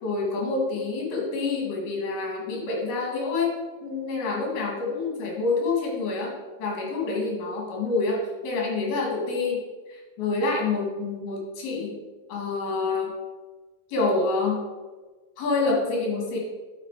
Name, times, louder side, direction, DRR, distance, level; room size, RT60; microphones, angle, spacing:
voice 1, 0.0-3.5 3.8-6.3 6.6-9.6 9.9-12.0 12.3-13.1 13.9-14.6 15.4-16.4, left 3 dB, 60° left, -1 dB, 4.0 m, -27 dB
10.5 x 7.7 x 4.9 m, 1.3 s
omnidirectional pair, 5.1 m